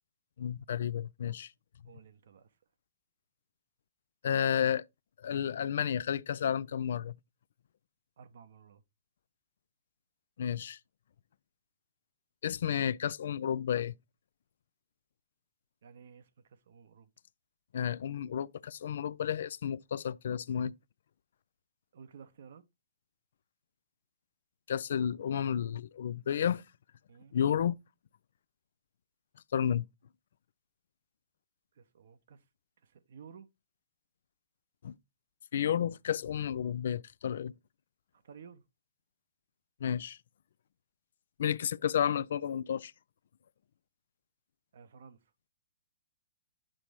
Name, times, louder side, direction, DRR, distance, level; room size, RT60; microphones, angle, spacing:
voice 1, 0.4-1.5 4.2-4.8 5.2-7.2 10.4-10.8 12.4-13.9 17.7-20.7 24.7-26.6 27.3-27.8 29.5-29.9 34.8-34.9 35.5-37.5 39.8-40.2 41.4-42.9, left 9 dB, 65° left, 0.3 m, -31 dB
voice 2, 1.8-2.6 8.2-8.8 15.8-17.1 21.9-22.6 27.1-27.3 29.5-29.7 31.7-32.5 32.8-33.5 38.1-38.6 44.7-45.3, right 6 dB, 65° right, 0.9 m, -54 dB
7.5 x 3.0 x 5.0 m
figure-of-eight pair, 120°, 0 cm